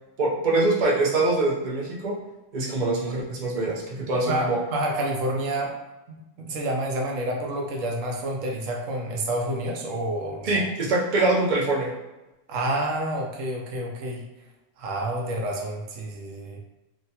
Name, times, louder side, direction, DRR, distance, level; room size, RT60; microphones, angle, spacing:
voice 1, 0.2-2.2 2.5-4.6 10.4-11.9, right 2 dB, 45° right, -3 dB, 0.7 m, -24 dB
voice 2, 4.3-5.7 6.1-10.7 12.5-14.2 14.8-16.6, right 1 dB, 85° right, 0 dB, 1.0 m, -29 dB
3.1 x 2.2 x 2.7 m, 1.0 s
omnidirectional pair, 1.3 m